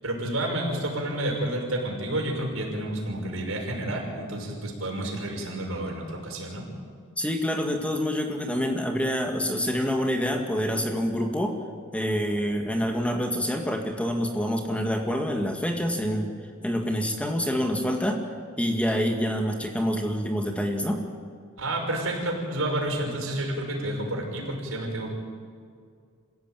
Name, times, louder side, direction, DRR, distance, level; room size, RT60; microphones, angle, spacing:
voice 1, 0.0-6.7 21.6-25.1, right 1 dB, 70° right, 0 dB, 6.0 m, -30 dB
voice 2, 7.2-11.6 11.9-16.3 16.6-18.2 18.6-21.0, equal, 5° left, 3 dB, 2.0 m, -26 dB
27.0 x 16.5 x 9.2 m, 2.2 s
head